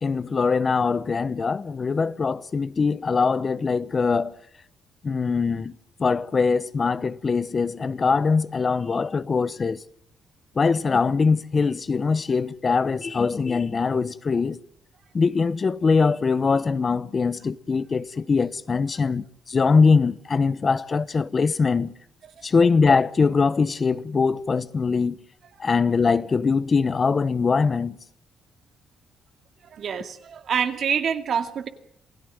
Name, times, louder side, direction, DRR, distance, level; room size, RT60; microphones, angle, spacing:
voice 1, 0.0-4.3 5.0-5.7 6.0-9.8 10.6-14.6 15.1-21.9 22.4-25.2 25.6-28.0, left 4 dB, 35° left, 0.9 m, -22 dB
voice 2, 29.7-31.7, right 7 dB, 60° right, 2.3 m, -26 dB
28.0 x 16.5 x 7.7 m
cardioid pair, 90°, 0 cm